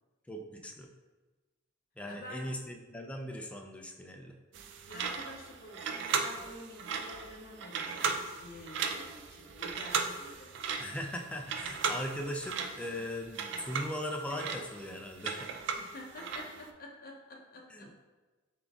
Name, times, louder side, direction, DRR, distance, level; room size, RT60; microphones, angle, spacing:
voice 1, 0.3-0.9 2.0-4.4 10.8-15.5 17.7-18.1, equal, 5° left, 2 dB, 0.4 m, -39 dB
voice 2, 2.0-2.5 4.9-10.6 15.7-17.9, left 1 dB, 50° left, -1 dB, 0.7 m, -49 dB
sound 1, 4.5-16.7, right 5 dB, 65° right, 0.4 m, -37 dB
3.8 x 3.5 x 3.5 m, 1.2 s
head